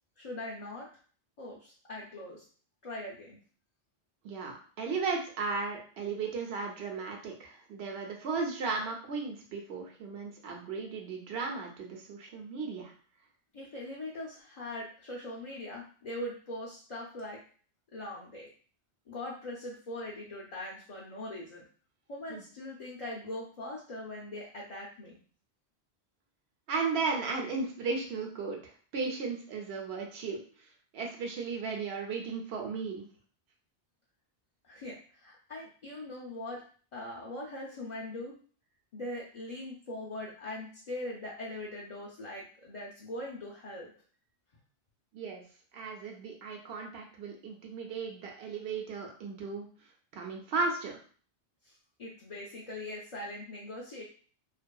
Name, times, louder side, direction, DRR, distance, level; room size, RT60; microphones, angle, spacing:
voice 1, 0.2-0.9 1.4-2.4 2.8-3.4 13.5-17.4 17.9-18.5 19.1-21.6 22.1-25.2 34.6-36.6 36.9-38.3 38.9-43.9 51.6-51.7 52.0-54.0, left 1 dB, 45° left, -4 dB, 0.5 m, -41 dB
voice 2, 4.2-12.9 22.3-22.4 26.7-30.4 30.9-33.1 45.1-45.4 45.7-49.7 50.1-51.0, right 4 dB, 75° right, 1 dB, 0.9 m, -35 dB
2.6 x 2.5 x 2.2 m, 0.42 s
omnidirectional pair, 1.1 m